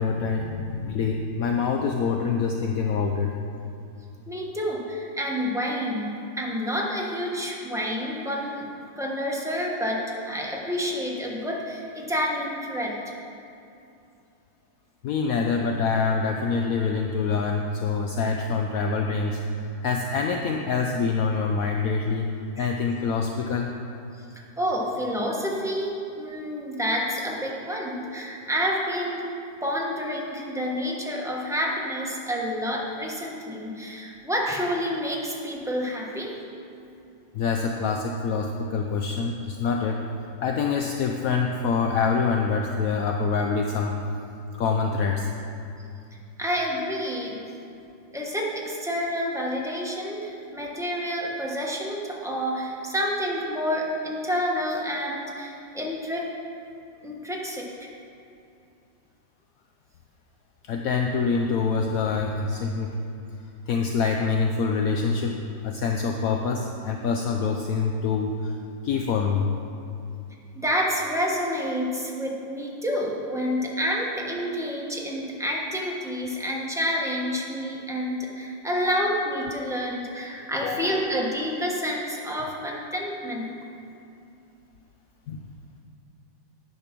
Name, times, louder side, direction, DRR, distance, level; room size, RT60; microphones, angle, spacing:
voice 1, 0.0-3.3 15.0-22.3 22.6-23.7 37.3-44.0 44.6-45.3 60.6-63.0 63.7-65.4 65.6-68.6 68.8-69.5 80.6-81.0 85.3-85.4, left 5 dB, 70° left, 2 dB, 0.8 m, -25 dB
voice 2, 4.3-13.0 22.6-22.7 24.6-29.3 29.6-36.3 46.4-47.4 48.1-56.3 57.0-57.9 70.5-83.5, equal, ahead, -3 dB, 0.9 m, -29 dB
10.0 x 6.9 x 6.0 m, 2.6 s
omnidirectional pair, 2.0 m